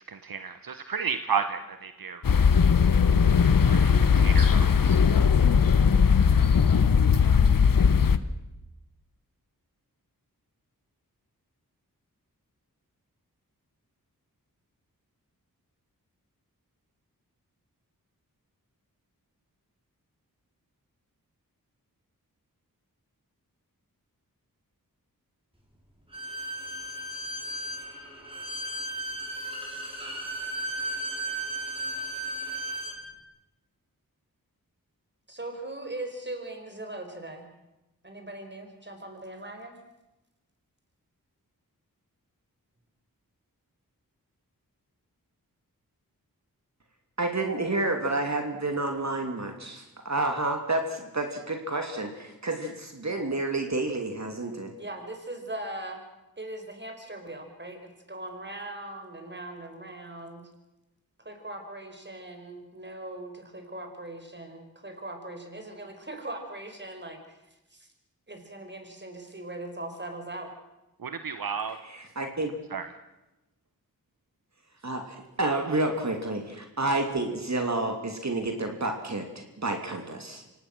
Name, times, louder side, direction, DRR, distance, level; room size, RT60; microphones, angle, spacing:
voice 1, 0.1-2.2 3.7-5.0 71.0-71.8 72.7-72.9, right 6 dB, 75° right, 9 dB, 1.1 m, -32 dB
sound 1, 2.2-8.2, left 6 dB, 65° left, 1.1 m, -19 dB
Bowed string instrument, 26.1-33.0, right 1 dB, 15° right, 5.6 m, -35 dB
voice 2, 35.3-37.5 38.0-39.8 54.8-56.0 56.4-60.5 61.2-67.4 67.7-67.9 68.3-70.5, right 1 dB, 30° right, 5 dB, 4.9 m, -40 dB
voice 3, 47.2-54.7 71.8-72.5 74.8-80.4, right 2 dB, 50° right, 4 dB, 2.9 m, -30 dB
25.5 x 18.5 x 6.2 m, 0.97 s
wide cardioid pair, 60°, 35 cm